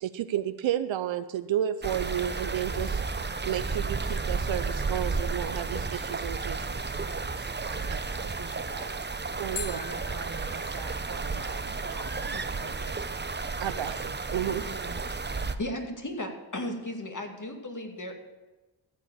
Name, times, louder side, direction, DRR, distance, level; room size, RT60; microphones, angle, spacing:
voice 1, 0.0-3.0 3.5-6.6 7.4-7.5 9.4-9.8 13.6-14.6, right 11 dB, 80° right, 12 dB, 0.6 m, -31 dB
sound 1, 1.5-2.5 9.6-12.5, left 7 dB, 65° left, 2.3 m, -45 dB
sound 2, 1.8-15.6, right 4 dB, 25° right, 0.8 m, -32 dB
voice 2, 7.6-9.0 9.7-13.0 13.6-13.7 14.6-15.0, right 4 dB, 50° right, 6 dB, 1.7 m, -44 dB
voice 3, 15.6-18.2, left 1 dB, 40° left, 3 dB, 2.3 m, -35 dB
14.5 x 5.0 x 8.6 m, 1.2 s
cardioid pair, 40°, 45 cm